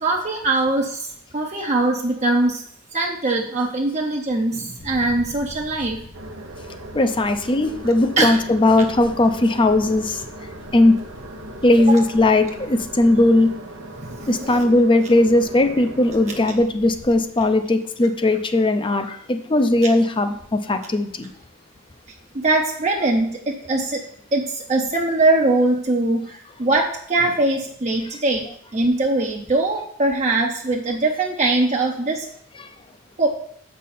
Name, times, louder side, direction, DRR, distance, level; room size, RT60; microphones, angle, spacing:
voice 1, 0.0-2.6 2.9-6.0 8.2-8.4 11.8-12.0 14.0-14.7 16.3-16.4 22.3-24.0 24.3-32.3 33.2-33.3, right 2 dB, 35° right, 0 dB, 0.7 m, -22 dB
sound 1, 4.8-17.2, left 1 dB, 55° left, 1.7 m, -44 dB
sound 2, 6.1-16.6, right 2 dB, 85° right, 0.9 m, -39 dB
voice 2, 6.9-10.2 10.7-11.0 11.6-13.5 14.3-21.3 32.6-32.7, left 2 dB, 25° left, 9 dB, 0.6 m, -18 dB
7.4 x 5.6 x 4.2 m, 0.66 s
head